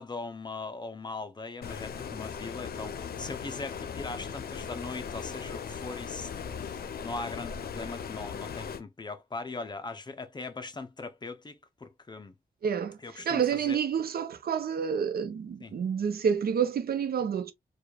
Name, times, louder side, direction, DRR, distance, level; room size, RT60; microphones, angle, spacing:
voice 1, 0.0-12.3 13.0-13.8 15.6-15.7, left 3 dB, 25° left, 0.5 m, -40 dB
Stream, 1.6-8.8, left 7 dB, 70° left, 0.6 m, -38 dB
voice 2, 12.6-13.0 13.3-17.5, right 7 dB, 70° right, 0.6 m, -28 dB
4.8 x 2.3 x 2.2 m
wide cardioid pair, 120°, 16 cm